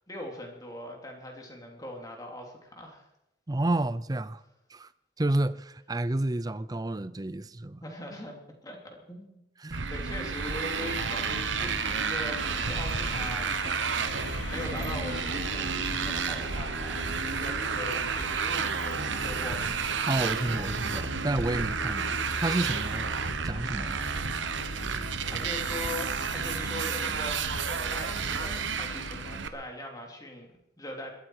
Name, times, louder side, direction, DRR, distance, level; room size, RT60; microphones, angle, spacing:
voice 1, 0.0-3.1 7.8-8.4 8.6-9.4 9.9-19.8 25.3-31.1, left 1 dB, 20° left, 3.1 m, -41 dB
voice 2, 3.5-4.4 4.7-4.9 5.2-7.8 9.6-9.9 20.1-23.1 23.4-24.0, right 1 dB, 20° right, 0.5 m, -30 dB
Motorcycle, 9.7-29.5, right 6 dB, 80° right, 1.1 m, -31 dB
sound 1, 10.8-29.5, left 3 dB, 80° left, 1.0 m, -40 dB
21.5 x 13.0 x 4.8 m
head